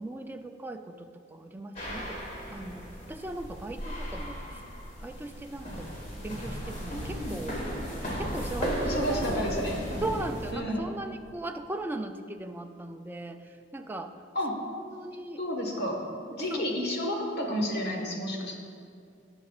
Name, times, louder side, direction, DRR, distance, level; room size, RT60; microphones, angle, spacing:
voice 1, 0.0-2.2 2.5-4.6 5.0-5.9 6.2-7.6 8.2-9.6 10.0-14.1 14.8-15.4 16.5-16.8, right 2 dB, 10° right, 6 dB, 0.4 m, -38 dB
sound 1, 1.8-10.5, equal, 40° left, 2.2 m, -35 dB
voice 2, 6.9-7.4 8.8-9.9 10.5-10.9 14.3-14.6 15.4-16.0 16.3-18.6, equal, 60° left, 0 dB, 1.6 m, -31 dB
19.0 x 7.0 x 2.4 m, 2.3 s
head